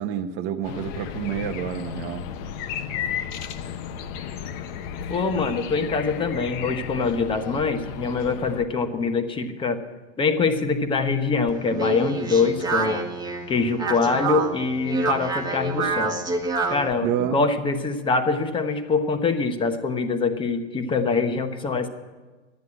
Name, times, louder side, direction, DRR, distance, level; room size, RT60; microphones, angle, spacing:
voice 1, 0.0-2.2 17.0-17.4, right 10 dB, 40° right, 4 dB, 0.9 m, -28 dB
sound 1, 0.6-8.6, left 8 dB, 40° left, 0.9 m, -34 dB
voice 2, 5.1-9.8 10.2-13.0 13.5-16.2 16.7-21.9, left 4 dB, 15° left, 7 dB, 1.0 m, -24 dB
Speech, 11.5-16.9, right 3 dB, 10° right, 1.5 m, -27 dB
11.5 x 9.3 x 9.8 m, 1.3 s
supercardioid pair, 140°, 35 cm